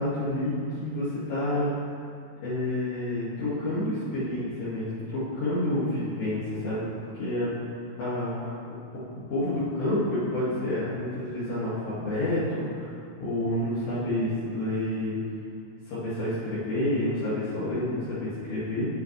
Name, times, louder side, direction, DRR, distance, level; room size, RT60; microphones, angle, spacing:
voice 1, 0.0-1.7 2.4-7.5 8.0-8.6 8.9-9.0 9.3-15.2 15.9-18.9, left 1 dB, 65° left, -14 dB, 4.2 m, -29 dB
10.0 x 9.2 x 3.4 m, 2.3 s
omnidirectional pair, 5.6 m